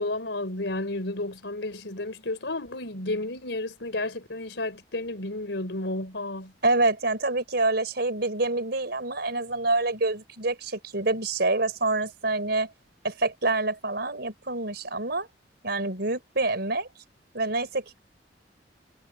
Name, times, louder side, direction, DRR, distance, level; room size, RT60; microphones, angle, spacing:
voice 1, 0.0-6.5, left 2 dB, 75° left, 4.3 m, -32 dB
voice 2, 6.6-12.7 13.0-15.3 15.6-16.9 17.3-18.0, right 2 dB, 65° right, 4.9 m, -26 dB
head